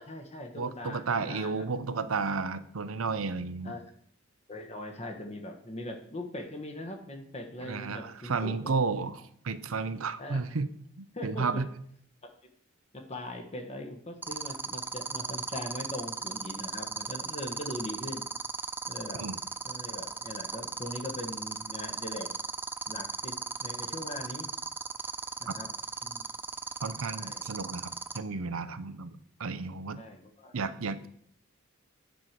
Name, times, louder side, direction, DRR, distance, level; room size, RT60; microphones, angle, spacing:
voice 1, 0.0-1.6 3.6-3.8 4.5-8.7 10.2-10.4 11.1-11.6 12.9-18.3 18.9-19.3 19.6-22.3 22.9-24.5 25.4-25.7 26.0-26.3 27.1-27.4 30.0-30.5, left 1 dB, 30° left, 3 dB, 1.4 m, -40 dB
voice 2, 0.6-3.8 7.6-10.7 11.0-11.7 19.2-19.4 26.8-30.0 30.5-31.1, right 4 dB, 75° right, 13 dB, 0.7 m, -32 dB
sound 1, 14.2-28.2, right 4 dB, 10° right, 0.4 m, -35 dB
10.0 x 4.8 x 7.4 m, 0.65 s
head